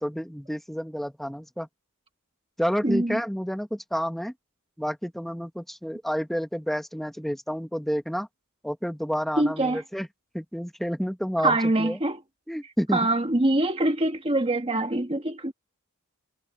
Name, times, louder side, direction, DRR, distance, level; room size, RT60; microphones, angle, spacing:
voice 1, 0.0-1.7 2.6-4.3 4.8-8.3 8.6-10.1 10.3-12.0 12.5-13.0 13.4-13.5, equal, ahead, 1.3 m, -30 dB
voice 2, 2.8-3.2 9.4-9.8 11.4-12.2 12.9-15.5, right 2 dB, 25° right, 1.6 m, -24 dB
head